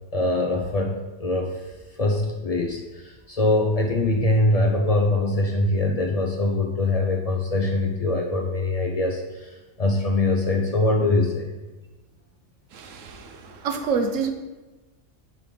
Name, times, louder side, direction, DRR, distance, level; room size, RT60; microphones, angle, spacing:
voice 1, 0.1-1.6 2.0-11.5, left 2 dB, 55° left, 1 dB, 0.4 m, -23 dB
voice 2, 12.7-14.3, right 5 dB, 80° right, 6 dB, 1.0 m, -27 dB
5.2 x 3.8 x 4.8 m, 1.1 s
omnidirectional pair, 1.3 m